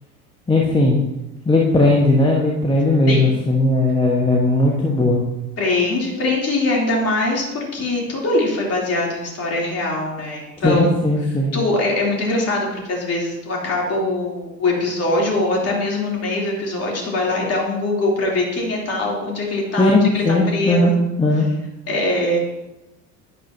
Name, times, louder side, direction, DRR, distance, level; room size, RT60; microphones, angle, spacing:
voice 1, 0.5-1.0 1.4-5.2 10.6-11.5 19.8-20.9 21.2-21.5, left 2 dB, 10° left, -3 dB, 1.4 m, -17 dB
voice 2, 5.6-10.9 11.5-20.9 21.9-22.4, left 2 dB, 30° left, -2 dB, 3.4 m, -22 dB
10.5 x 10.5 x 2.9 m, 0.97 s
figure-of-eight pair, 70°, 49 cm